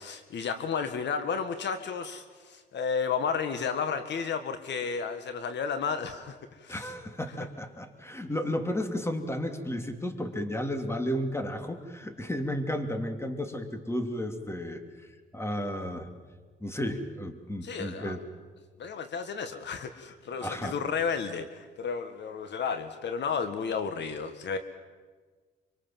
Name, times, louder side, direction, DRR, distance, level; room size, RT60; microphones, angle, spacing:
voice 1, 0.0-6.9 17.6-18.2 18.8-24.6, left 6 dB, 65° left, 9 dB, 1.8 m, -32 dB
voice 2, 6.7-14.8 15.3-16.1 16.6-18.2 20.4-20.8, equal, 15° left, 7 dB, 3.0 m, -33 dB
26.0 x 25.0 x 7.6 m, 1.4 s
cardioid pair, 90°, 20 cm